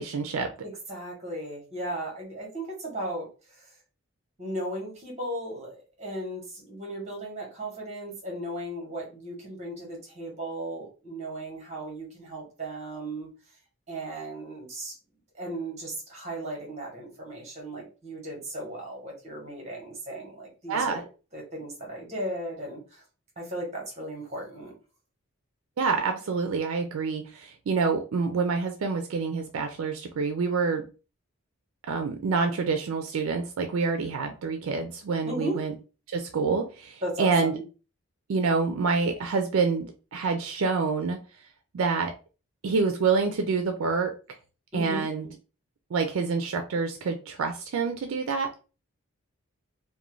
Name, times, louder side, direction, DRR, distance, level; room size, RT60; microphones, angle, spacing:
voice 1, 0.0-0.5 20.7-21.0 25.8-30.8 31.9-35.7 36.1-37.5 38.3-41.2 41.7-42.1 42.6-44.1 44.7-45.3 45.9-48.6, right 4 dB, 70° right, 5 dB, 0.4 m, -27 dB
voice 2, 0.6-3.7 4.4-13.3 13.9-14.9 15.3-21.0 21.3-23.0 23.4-24.7 35.2-35.6 37.0-37.6 44.7-45.0, right 1 dB, 30° right, 0 dB, 1.0 m, -36 dB
2.5 x 2.1 x 3.0 m, 0.33 s
head